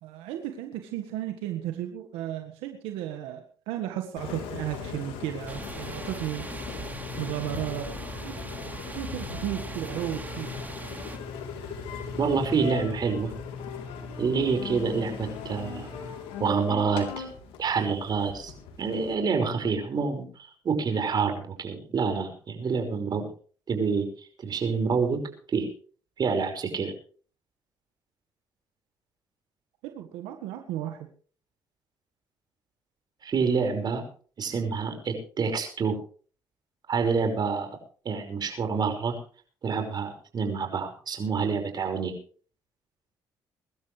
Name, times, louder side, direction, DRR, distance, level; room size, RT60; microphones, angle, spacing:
voice 1, 0.0-6.5 7.2-8.5 8.9-10.5 29.8-31.1, right 12 dB, 90° right, 5 dB, 1.6 m, -34 dB
Engine, 4.2-19.1, left 5 dB, 85° left, 3.6 m, -38 dB
sound 1, 5.5-11.2, right 2 dB, 20° right, 3.4 m, -41 dB
voice 2, 12.2-13.3 14.2-15.9 16.4-17.3 17.6-18.5 18.8-23.3 23.7-24.1 24.4-25.2 25.5-25.7 26.2-26.9 33.2-34.0 34.4-36.0 36.9-37.7 38.1-39.2 39.6-42.1, right 5 dB, 50° right, 5 dB, 5.5 m, -27 dB
23.0 x 12.5 x 3.4 m, 0.42 s
supercardioid pair, 75°, 9 cm